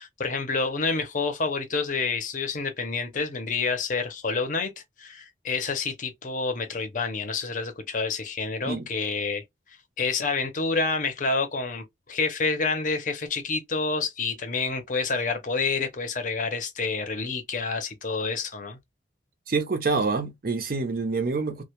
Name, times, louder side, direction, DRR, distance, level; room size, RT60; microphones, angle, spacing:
voice 1, 0.0-4.7 5.0-9.4 10.0-18.8, left 4 dB, 45° left, 0.6 m, -28 dB
voice 2, 19.5-21.6, right 4 dB, 50° right, 0.5 m, -26 dB
2.1 x 2.1 x 2.8 m
head